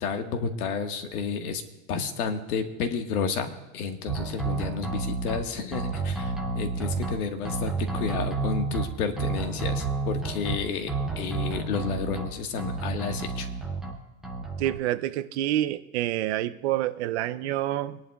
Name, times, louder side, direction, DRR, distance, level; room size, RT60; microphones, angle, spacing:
voice 1, 0.0-1.6 1.9-13.5, left 5 dB, 90° left, 5 dB, 1.7 m, -31 dB
sound 1, 4.1-5.4 5.7-7.1 7.5-8.8 9.2-10.6 10.9-12.3 12.6-13.9 14.2-14.7, right 3 dB, ahead, 0.4 m, -30 dB
voice 2, 14.6-18.0, right 13 dB, 50° right, 12 dB, 0.6 m, -27 dB
24.5 x 11.0 x 2.4 m, 1.1 s
supercardioid pair, 170°, 43 cm